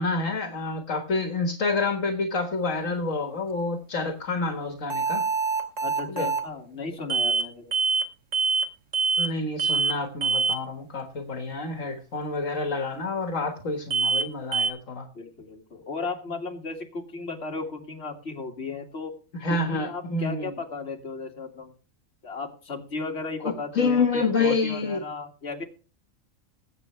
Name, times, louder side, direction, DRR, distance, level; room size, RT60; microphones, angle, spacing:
voice 1, 0.0-5.3 6.1-6.3 9.2-15.1 19.4-20.5 23.4-25.0, left 3 dB, 70° left, 5 dB, 1.9 m, -28 dB
sound 1, 4.9-6.5 7.1-7.5 7.7-8.1 8.3-8.7 8.9-9.3 9.6-9.9 10.2-10.6 13.9-14.3 14.5-14.7, right 4 dB, 65° right, 1.7 m, -24 dB
voice 2, 5.8-7.7 15.1-19.2 19.5-21.7 22.2-25.6, left 4 dB, 50° left, 2 dB, 2.3 m, -35 dB
20.0 x 8.0 x 3.2 m, 0.36 s
omnidirectional pair, 1.4 m